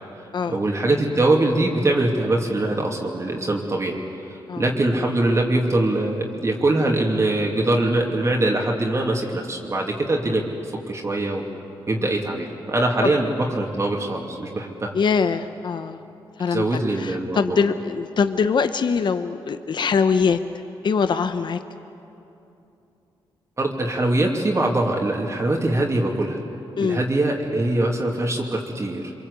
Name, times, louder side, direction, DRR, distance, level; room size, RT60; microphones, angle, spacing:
voice 1, 0.5-4.0 4.3-10.4 10.9-11.5 11.9-14.9 16.5-17.6 23.6-26.4 26.7-29.1, right 2 dB, 30° right, 0 dB, 2.7 m, -22 dB
voice 2, 14.9-16.0 16.4-16.6 17.0-20.4 20.8-21.6 26.8-27.0, left 5 dB, 55° left, 10 dB, 0.9 m, -22 dB
25.5 x 24.0 x 8.3 m, 2.8 s
cardioid pair, 85°, 9 cm